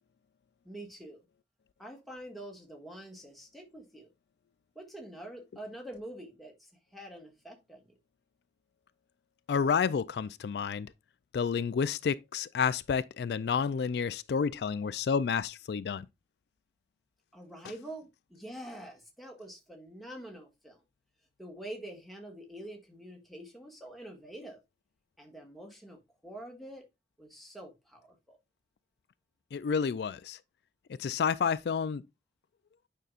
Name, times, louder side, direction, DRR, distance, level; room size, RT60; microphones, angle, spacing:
voice 1, 0.6-1.2 1.8-4.1 4.8-7.9 17.3-20.8 21.4-24.6 25.2-26.8 27.2-28.4, right 1 dB, ahead, 1.7 m, -46 dB
voice 2, 9.5-10.9 11.3-16.1 29.5-30.4 31.0-32.0, left 6 dB, 70° left, 0.3 m, -30 dB
9.1 x 5.5 x 2.4 m
head